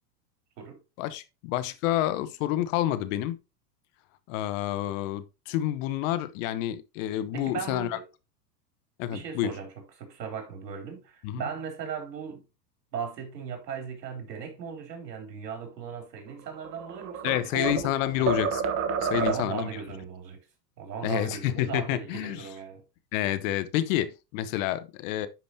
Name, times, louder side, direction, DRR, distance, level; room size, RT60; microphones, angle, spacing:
voice 1, 1.0-3.4 4.3-8.0 9.0-9.5 11.2-11.4 17.2-18.6 19.0-19.7 21.0-22.5 23.1-25.3, left 13 dB, 50° left, 1.0 m, -29 dB
voice 2, 7.3-8.1 9.1-9.7 10.0-12.4 12.9-18.3 19.1-20.4 20.8-22.8, right 6 dB, 80° right, 3.6 m, -37 dB
sound 1, 16.5-17.9 18.3-19.7, right 5 dB, 30° right, 1.2 m, -29 dB
10.5 x 5.2 x 2.8 m
hypercardioid pair, 115°, 49 cm